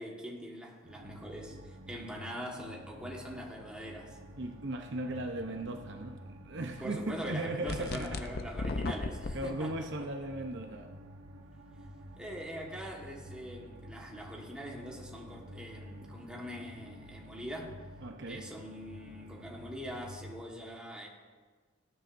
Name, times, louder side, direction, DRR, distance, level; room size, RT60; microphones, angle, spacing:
voice 1, 0.0-4.2 6.8-9.9 12.2-17.8 18.3-21.1, equal, 5° right, -2 dB, 1.5 m, -43 dB
sound 1, 0.8-20.4, equal, 75° right, 1.1 m, -50 dB
voice 2, 4.4-8.2 9.3-11.0 18.0-18.5, right 1 dB, 55° right, 4 dB, 0.8 m, -37 dB
sound 2, 7.7-9.3, left 3 dB, 50° left, 0.6 m, -35 dB
18.5 x 10.0 x 2.6 m, 1.4 s
head